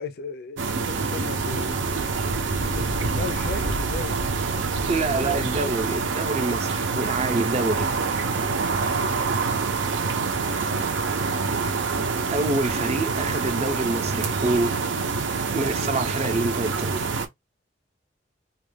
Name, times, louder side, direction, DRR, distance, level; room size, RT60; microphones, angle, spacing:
voice 1, 0.0-2.1 2.5-4.6 4.9-5.4 11.1-11.6, left 4 dB, 55° left, 0.5 m, -37 dB
sound 1, 0.6-17.3, right 4 dB, 75° right, 0.6 m, -26 dB
voice 2, 4.9-7.9 12.3-14.8 15.5-17.1, right 2 dB, 35° right, 0.5 m, -26 dB
2.4 x 2.3 x 3.3 m
head